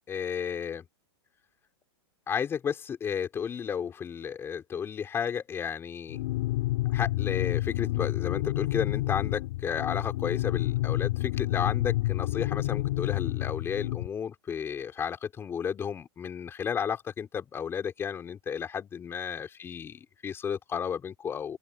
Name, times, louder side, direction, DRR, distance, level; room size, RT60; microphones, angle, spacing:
voice 1, 0.1-0.8 2.3-6.2 6.9-21.6, left 7 dB, 15° left, 4.4 m, -33 dB
sound 1, 6.1-14.1, left 17 dB, 55° left, 4.8 m, -29 dB
open air
hypercardioid pair, 150°, 15 cm